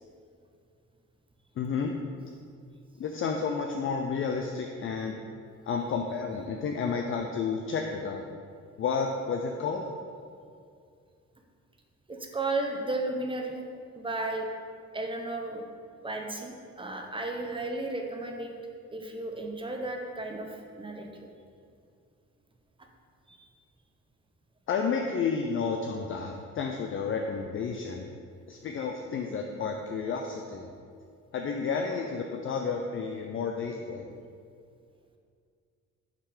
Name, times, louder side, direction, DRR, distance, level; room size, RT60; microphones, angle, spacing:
voice 1, 1.6-1.9 3.0-5.2 5.7-8.2 8.8-9.9 24.7-28.1 28.5-30.6 31.3-34.1, left 5 dB, 45° left, 2 dB, 0.4 m, -31 dB
voice 2, 12.1-13.6 13.9-14.5 14.9-15.7 16.0-18.5 18.9-21.3 23.3-23.5, right 2 dB, 15° right, 3 dB, 0.7 m, -34 dB
5.7 x 3.4 x 4.9 m, 2.3 s
cardioid pair, 90°, 30 cm